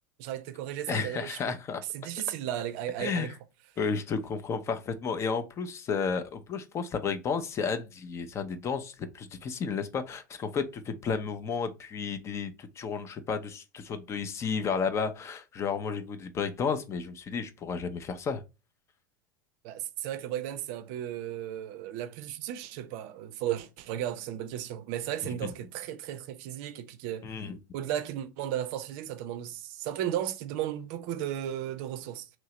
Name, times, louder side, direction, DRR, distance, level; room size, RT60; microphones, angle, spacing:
voice 1, 0.2-1.5 1.9-3.3 19.6-27.4 27.7-32.3, right 11 dB, 55° right, 0.5 m, -35 dB
voice 2, 0.9-1.8 3.0-3.3 3.8-18.4 25.2-25.5 27.2-27.6, left 5 dB, 30° left, 0.6 m, -32 dB
3.0 x 2.7 x 3.1 m
figure-of-eight pair, 80°, 9 cm